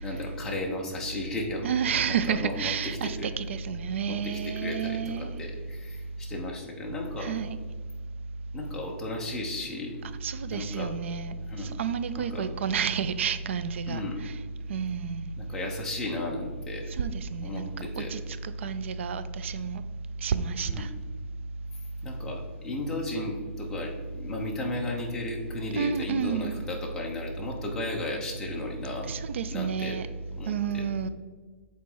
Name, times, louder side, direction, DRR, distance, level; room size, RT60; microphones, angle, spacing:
voice 1, 0.0-1.7 2.1-3.3 4.1-7.3 8.5-10.0 10.5-10.9 11.4-11.7 12.1-12.4 13.9-14.2 15.4-16.8 17.4-18.1 20.6-20.9 22.0-29.1 29.5-30.0 30.4-30.8, left 2 dB, 5° left, 0.8 m, -35 dB
voice 2, 1.6-5.4 7.2-7.6 10.2-11.3 11.8-14.3 14.7-15.3 17.0-17.7 18.0-19.8 20.2-20.9 25.8-26.6 29.1-30.1 30.5-31.1, right 6 dB, 65° right, 0.4 m, -30 dB
7.6 x 4.1 x 3.8 m
hypercardioid pair, 165°, 7 cm